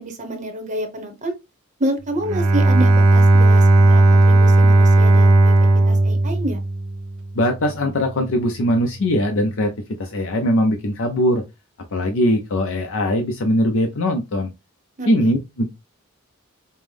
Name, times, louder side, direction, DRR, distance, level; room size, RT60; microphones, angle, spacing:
voice 1, 0.0-1.3 1.8-6.6 15.0-15.3, right 1 dB, 35° right, 0.8 m, -28 dB
Bowed string instrument, 2.2-7.2, right 2 dB, 80° right, 0.5 m, -14 dB
voice 2, 7.3-9.7 10.0-11.4 11.9-14.5 15.1-15.7, left 1 dB, 65° left, 0.6 m, -20 dB
5.3 x 2.0 x 3.3 m
head